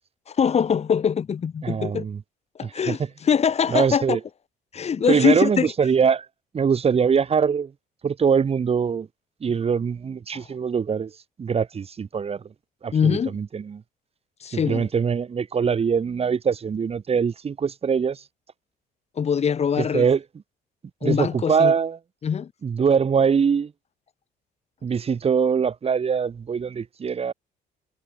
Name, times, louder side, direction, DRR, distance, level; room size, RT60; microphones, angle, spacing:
voice 1, 0.3-2.0 2.5-4.2 4.7-5.7 10.3-10.5 12.9-13.4 14.4-14.9 19.1-20.0 21.0-21.7 22.2-22.5, left 7 dB, 40° left, 3.0 m, -23 dB
voice 2, 1.6-2.2 2.6-3.0 3.7-4.2 5.1-6.3 6.5-7.7 8.0-9.1 9.4-11.1 11.4-12.4 12.8-13.8 14.5-18.2 19.8-20.2 21.0-22.0 22.6-23.7 24.8-27.3, right 6 dB, 35° right, 6.3 m, -23 dB
cardioid pair, 110°, 17 cm